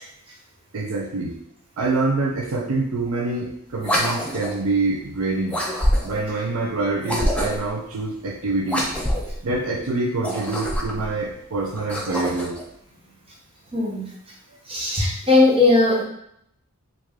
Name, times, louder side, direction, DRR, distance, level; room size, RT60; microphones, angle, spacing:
voice 1, 0.7-1.4 1.8-5.6 6.0-8.9 9.4-12.5, right 3 dB, 75° right, 1 dB, 0.4 m, -25 dB
sound 1, 3.8-4.6 5.5-6.3 7.0-7.7 8.6-9.4 10.1-11.1 11.7-12.6, equal, 5° left, 0.4 m, -25 dB
voice 2, 13.7-14.1 14.7-16.0, left 2 dB, 25° right, -4 dB, 0.9 m, -18 dB
3.1 x 2.5 x 3.5 m, 0.73 s
head